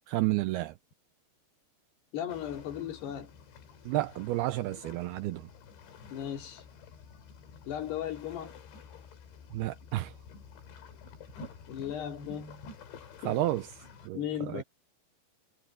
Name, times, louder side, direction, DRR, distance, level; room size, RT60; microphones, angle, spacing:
voice 1, 0.1-0.7 3.9-5.4 9.5-10.1 13.3-13.7 14.1-14.2 14.5-14.6, right 17 dB, 85° right, 2.3 m, -30 dB
voice 2, 2.1-3.3 6.1-6.6 7.7-8.5 11.7-12.7 13.2-13.4 14.1-14.6, left 9 dB, 70° left, 4.7 m, -36 dB
sound 1, 2.3-14.1, left 5 dB, 85° left, 5.4 m, -50 dB
omnidirectional pair, 5.0 m